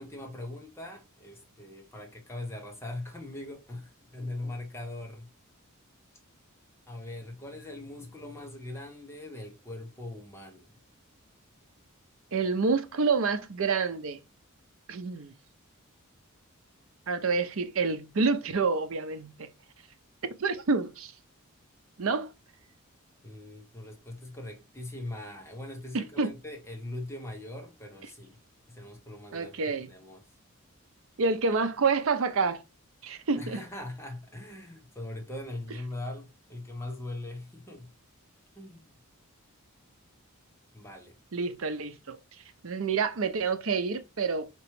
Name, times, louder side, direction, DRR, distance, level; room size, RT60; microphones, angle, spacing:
voice 1, 0.0-5.3 6.9-10.7 23.2-28.4 28.7-30.2 33.4-37.9 38.5-39.0 40.7-41.2, left 1 dB, 10° left, 0.8 m, -41 dB
voice 2, 12.3-14.2 14.9-15.3 17.1-19.5 20.4-21.1 22.0-22.3 25.9-26.3 29.3-29.9 31.2-32.6 33.0-33.6 41.3-42.2 42.6-44.5, right 4 dB, 65° right, 0.6 m, -28 dB
4.5 x 3.0 x 3.0 m
head